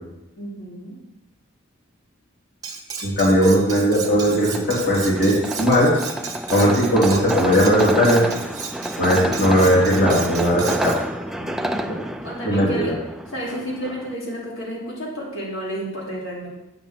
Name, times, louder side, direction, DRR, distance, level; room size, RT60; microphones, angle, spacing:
voice 1, 0.4-1.0 11.5-12.9 13.3-16.5, equal, 80° left, -5 dB, 3.3 m, -32 dB
Cutlery silverware, 2.6-11.0, right 5 dB, 20° right, 1.1 m, -34 dB
voice 2, 3.0-5.9 6.5-8.2 9.0-10.9 11.4-11.5 11.9-12.0 12.4-12.9, equal, 50° left, -6 dB, 3.1 m, -18 dB
sound 1, 4.0-14.1, equal, ahead, 0.3 m, -29 dB
8.8 x 6.0 x 7.3 m, 0.95 s
head